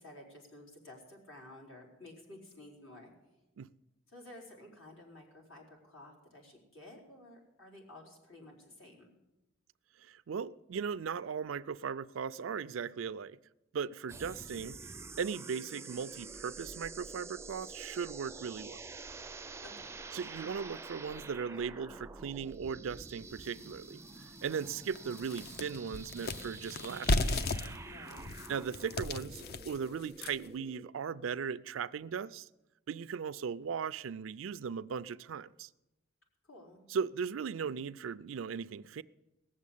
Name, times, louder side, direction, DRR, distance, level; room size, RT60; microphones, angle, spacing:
voice 1, 0.0-3.1 4.1-9.1 19.6-20.0 27.8-28.3 36.4-36.8, left 1 dB, 85° left, 4.3 m, -53 dB
voice 2, 10.0-13.4 13.7-14.8 15.2-18.8 20.1-24.0 24.4-27.4 28.5-32.5 32.9-35.7 36.9-39.0, right 6 dB, 80° right, 0.4 m, -38 dB
sound 1, 14.1-30.9, right 3 dB, 15° right, 0.4 m, -48 dB
sound 2, 23.4-23.5 24.0-24.1 24.5-30.6, left 2 dB, 55° left, 0.6 m, -35 dB
18.5 x 7.4 x 8.4 m
head